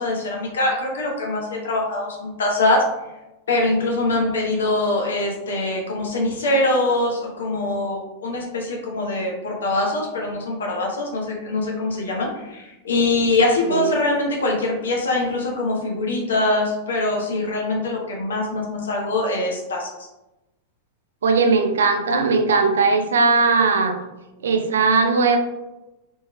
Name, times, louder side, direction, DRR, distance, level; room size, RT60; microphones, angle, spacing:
voice 1, 0.0-2.9 3.5-19.9, left 2 dB, 65° left, 0 dB, 0.7 m, -23 dB
voice 2, 21.2-24.0 24.4-25.4, right 4 dB, 65° right, 6 dB, 0.5 m, -18 dB
4.3 x 3.0 x 2.2 m, 0.98 s
figure-of-eight pair, 90°, 0 cm